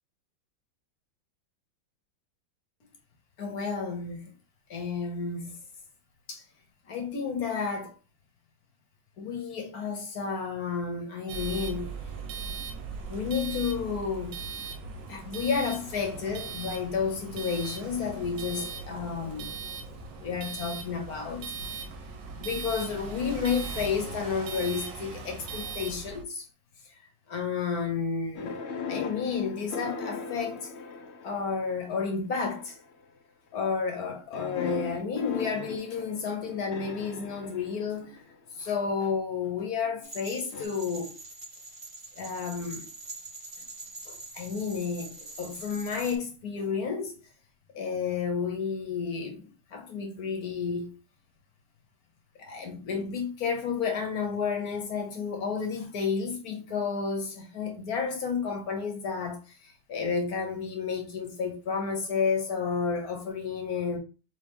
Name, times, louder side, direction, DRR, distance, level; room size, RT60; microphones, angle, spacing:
voice 1, 3.4-4.3 4.7-5.6 6.3-6.4 6.9-7.9 9.2-11.9 13.1-14.4 15.1-19.5 20.2-21.5 22.4-26.4 27.3-28.6 28.9-30.7 31.2-32.8 33.5-38.3 38.5-41.1 42.2-42.9 44.1-47.2 47.7-50.9 52.4-64.0, left 5 dB, 60° left, 1.2 m, -31 dB
sound 1, 11.3-26.2, right 5 dB, 70° right, 1.5 m, -39 dB
sound 2, 28.3-31.7 32.5-32.9 34.3-38.4 40.5-40.6, left 5 dB, 80° left, 0.6 m, -38 dB
sound 3, 40.0-46.2, right 2 dB, 35° right, 0.5 m, -44 dB
4.3 x 3.1 x 3.4 m
omnidirectional pair, 2.0 m